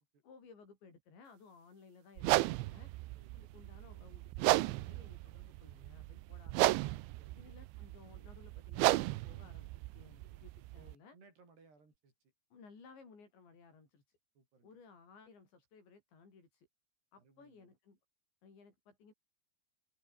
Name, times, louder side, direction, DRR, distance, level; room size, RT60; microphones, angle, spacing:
voice 1, 0.2-2.9 3.4-6.8 7.3-11.2 12.5-14.2 14.6-16.7 17.1-18.0 18.4-19.1, left 5 dB, 70° left, 9.9 m, -59 dB
sound 1, 2.2-10.9, right 19 dB, 85° right, 3.1 m, -34 dB
voice 2, 3.2-3.6 7.2-7.6 10.7-12.3 14.4-14.8 17.2-17.7, right 4 dB, 60° right, 9.7 m, -65 dB
omnidirectional pair, 5.3 m